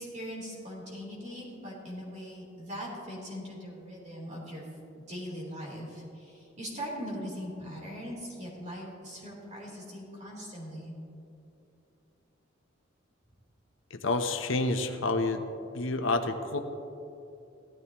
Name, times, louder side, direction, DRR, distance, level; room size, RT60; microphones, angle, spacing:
voice 1, 0.0-4.7 4.9-10.9, equal, 35° right, -4 dB, 3.5 m, -40 dB
voice 2, 13.9-15.4 15.7-16.6, left 2 dB, 75° left, 7 dB, 0.8 m, -29 dB
16.5 x 13.5 x 3.0 m, 2.7 s
head